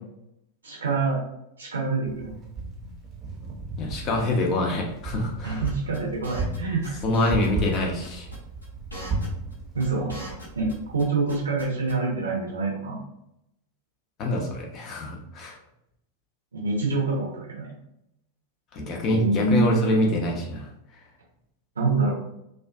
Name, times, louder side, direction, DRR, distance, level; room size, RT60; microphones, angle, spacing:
voice 1, 0.6-1.2 1.6-2.3 5.4-7.0 9.7-10.1 10.6-13.0 16.5-17.7 19.0-19.8 21.8-22.1, right 3 dB, 75° right, -2 dB, 0.6 m, -26 dB
Wind, 2.1-11.0, right 3 dB, 30° right, 0.6 m, -34 dB
voice 2, 3.8-5.7 7.0-8.3 14.2-15.6 18.7-20.7, left 1 dB, 35° left, -1 dB, 0.6 m, -25 dB
sound 1, 5.6-6.6 6.8-7.5 7.7-7.8 8.0-8.4 8.6-10.7 11.0-11.9, equal, 90° left, 0.8 m, -40 dB
2.4 x 2.3 x 2.3 m, 0.81 s
figure-of-eight pair, 90°, 0 cm